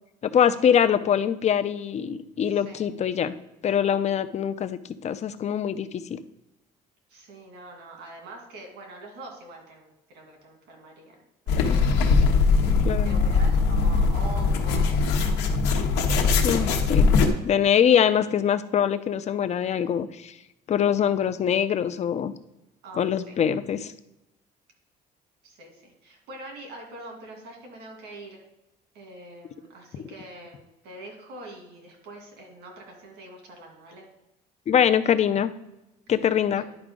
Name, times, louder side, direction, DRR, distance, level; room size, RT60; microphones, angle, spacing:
voice 1, 0.3-3.4 3.6-6.2 12.8-13.2 16.4-17.1 17.4-20.3 20.7-22.3 23.0-23.9 34.7-35.5 36.1-36.6, left 8 dB, 40° left, 11 dB, 0.6 m, -23 dB
voice 2, 2.5-2.9 7.1-11.2 11.5-12.1 12.4-15.5 22.8-23.4 25.4-28.4 28.9-34.1 36.5-36.7, right 2 dB, 80° right, 1 dB, 2.5 m, -44 dB
Man polishing leather shoes with sponge and brush, 11.5-17.3, left 4 dB, 90° left, 1.1 m, -21 dB
11.0 x 4.9 x 3.8 m, 0.94 s
cardioid pair, 110°, 17 cm